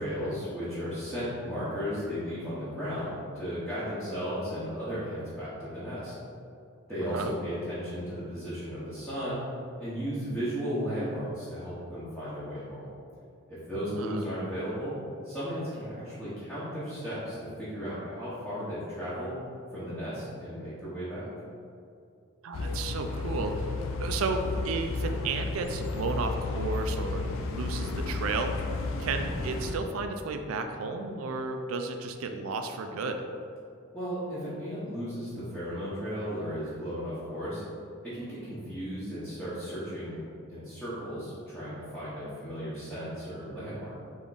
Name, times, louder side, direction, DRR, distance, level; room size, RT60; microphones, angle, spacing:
voice 1, 0.0-6.1 6.9-9.4 9.8-12.9 13.5-15.0 15.2-19.4 19.7-21.3 33.9-37.6 38.0-40.2 40.5-43.9, equal, ahead, -14 dB, 0.9 m, -35 dB
voice 2, 13.7-14.3 22.4-23.7 24.0-27.2 27.5-28.5 29.0-33.2, right 3 dB, 75° right, 6 dB, 0.4 m, -33 dB
sound 1, 22.5-29.8, left 3 dB, 65° left, 0.4 m, -33 dB
3.5 x 3.5 x 4.0 m, 2.5 s
head